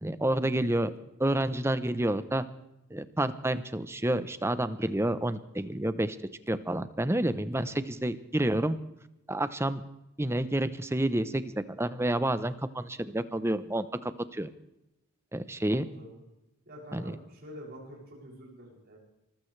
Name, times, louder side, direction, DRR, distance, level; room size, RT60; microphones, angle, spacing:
voice 1, 0.0-0.9 1.2-2.5 2.9-6.2 6.5-8.8 9.3-9.8 10.2-14.5 15.3-15.9 16.9-17.2, right 1 dB, 10° right, 13 dB, 0.7 m, -29 dB
voice 2, 15.6-16.2 16.7-19.0, equal, 45° right, -3 dB, 6.8 m, -47 dB
25.0 x 15.5 x 3.3 m, 0.90 s
head